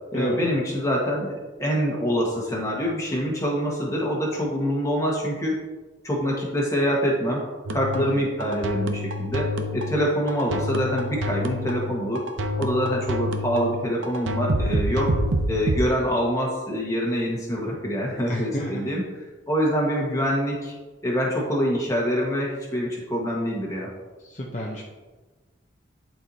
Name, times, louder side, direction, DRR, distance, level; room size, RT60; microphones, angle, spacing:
voice 1, 0.1-5.6 6.0-7.4 7.7-12.2 12.6-15.1 15.5-19.0 19.5-20.7 21.0-23.9, equal, 15° left, -3 dB, 1.4 m, -25 dB
sound 1, 7.7-15.8, equal, 70° right, 0.7 m, -27 dB
voice 2, 7.9-8.3 18.3-18.8 24.2-24.8, left 1 dB, 35° left, -3 dB, 0.8 m, -30 dB
11.5 x 4.5 x 2.8 m, 1.2 s
head